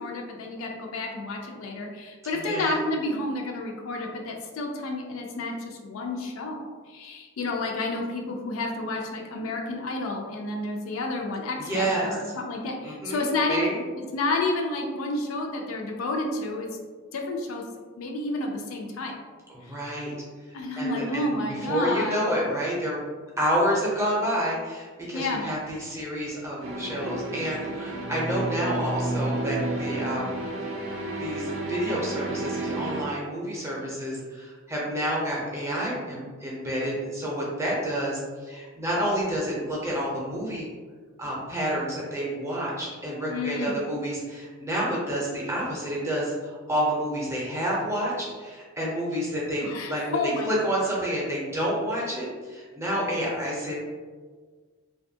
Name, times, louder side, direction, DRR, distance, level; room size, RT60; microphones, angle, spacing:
voice 1, 0.0-13.7 14.0-16.7 17.1-17.6 18.0-19.2 20.5-22.3 25.1-25.5 43.3-43.8 49.6-50.5, left 2 dB, 80° left, 1 dB, 0.4 m, -30 dB
voice 2, 2.3-2.8 11.6-12.1 12.8-13.8 19.5-20.1 20.5-23.0 23.4-30.3 31.2-40.7 41.2-49.6 49.9-53.7, equal, 15° right, -5 dB, 0.6 m, -29 dB
sound 1, 26.6-33.0, right 2 dB, 75° right, 0.5 m, -31 dB
2.6 x 2.2 x 2.6 m, 1.5 s
head